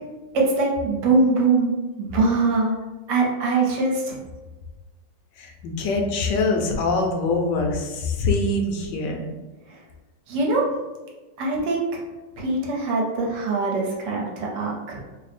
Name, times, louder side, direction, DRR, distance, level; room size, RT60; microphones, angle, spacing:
voice 1, 0.3-1.7 2.0-2.7 3.1-4.2 10.3-10.6 11.4-11.9 12.4-15.0, right 3 dB, 70° right, -2 dB, 1.2 m, -22 dB
voice 2, 5.4-9.3, left 3 dB, 75° left, 2 dB, 1.2 m, -24 dB
3.2 x 2.0 x 4.1 m, 1.2 s
omnidirectional pair, 2.1 m